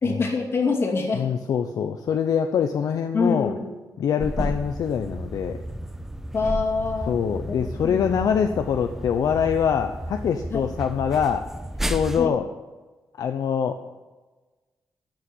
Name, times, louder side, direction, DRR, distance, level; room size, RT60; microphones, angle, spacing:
voice 1, 0.0-1.3 3.1-3.7 6.3-7.1 7.4-8.0 10.5-10.6 12.2-12.3, left 4 dB, 40° left, 1 dB, 2.4 m, -25 dB
voice 2, 1.2-3.5 4.0-5.6 7.1-11.5 11.8-12.5 13.2-14.0, left 7 dB, 65° left, 7 dB, 0.7 m, -24 dB
sound 1, 4.2-12.3, right 1 dB, 5° right, 0.5 m, -33 dB
13.5 x 6.5 x 9.4 m, 1.2 s
wide cardioid pair, 170°, 7 cm